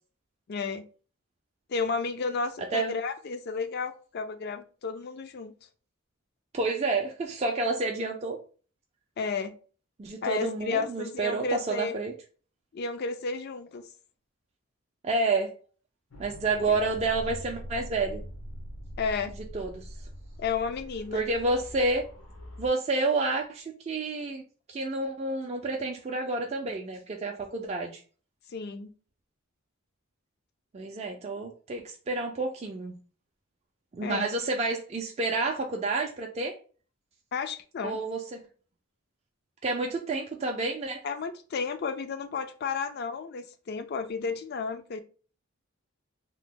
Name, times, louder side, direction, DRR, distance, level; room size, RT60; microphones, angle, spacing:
voice 1, 0.5-0.8 1.7-5.5 9.2-9.5 10.2-11.9 12.7-13.9 19.0-19.3 20.4-21.2 28.5-28.9 34.0-34.3 37.3-38.0 41.0-45.0, left 4 dB, 45° left, 10 dB, 0.3 m, -32 dB
voice 2, 6.5-8.4 10.0-12.1 15.0-15.5 16.2-18.2 19.5-19.9 21.1-22.0 22.6-24.4 24.7-28.0 30.7-33.0 33.9-36.5 37.8-38.4 39.6-41.0, right 3 dB, 30° right, 1 dB, 0.3 m, -29 dB
sound 1, 16.1-22.7, equal, 80° left, 0.8 m, -43 dB
2.9 x 2.0 x 3.5 m, 0.40 s
head